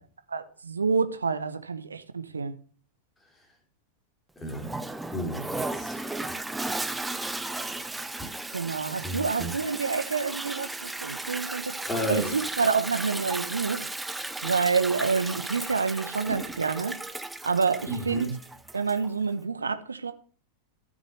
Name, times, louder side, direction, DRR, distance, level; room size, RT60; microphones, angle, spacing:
voice 1, 0.3-2.5 8.5-11.8 12.1-13.9 14.4-17.0 17.4-18.3 18.7-20.1, right 5 dB, 75° right, 0.8 m, -28 dB
voice 2, 4.4-4.8 5.1-6.0 9.0-9.5 11.9-12.3 17.9-18.3, equal, 10° left, 2.8 m, -32 dB
Toilet flush, 4.5-19.1, right 2 dB, 5° right, 0.6 m, -35 dB
13.0 x 6.5 x 3.2 m
figure-of-eight pair, 90°, 0 cm